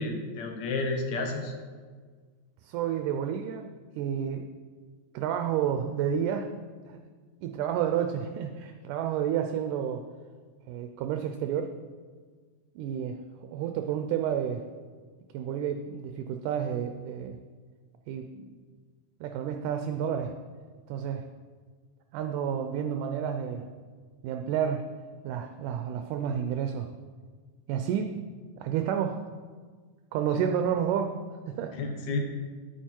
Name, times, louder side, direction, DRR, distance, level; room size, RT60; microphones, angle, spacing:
voice 1, 0.0-1.5 31.7-32.2, left 3 dB, 65° left, 3 dB, 2.3 m, -31 dB
voice 2, 2.6-3.7 4.0-4.5 5.1-6.5 6.9-7.0 7.4-10.0 10.7-11.7 12.8-14.6 15.3-17.4 18.1-18.6 19.2-20.4 20.9-21.3 22.1-23.7 24.2-24.9 25.2-26.9 27.7-28.2 28.6-29.2 30.1-31.2 31.5-31.8, right 8 dB, 80° right, 6 dB, 2.1 m, -30 dB
11.0 x 9.2 x 4.5 m, 1.6 s
omnidirectional pair, 3.9 m